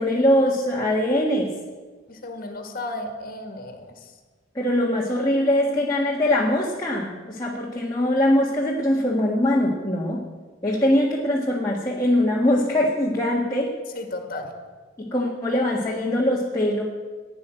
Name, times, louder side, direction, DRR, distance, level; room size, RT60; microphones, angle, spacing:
voice 1, 0.0-1.5 4.5-10.2 10.6-13.8 15.0-16.8, left 1 dB, 20° left, -4 dB, 1.7 m, -22 dB
voice 2, 2.1-3.9 13.9-14.5, left 2 dB, 50° left, 6 dB, 1.9 m, -34 dB
15.5 x 9.6 x 7.6 m, 1.4 s
head